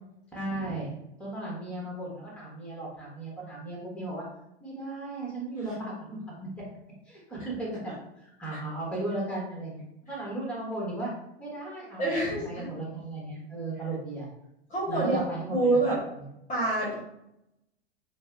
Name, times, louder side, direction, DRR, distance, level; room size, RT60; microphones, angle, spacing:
voice 1, 0.3-0.9 1.2-4.2 4.6-6.5 7.0-11.1 11.4-14.3 14.9-15.8, right 2 dB, 5° left, -4 dB, 1.4 m, -36 dB
voice 2, 12.0-12.7 14.7-15.2 15.5-16.0 16.5-17.0, right 2 dB, 25° left, -5 dB, 1.2 m, -26 dB
5.9 x 2.3 x 2.4 m, 0.82 s
figure-of-eight pair, 90°, 32 cm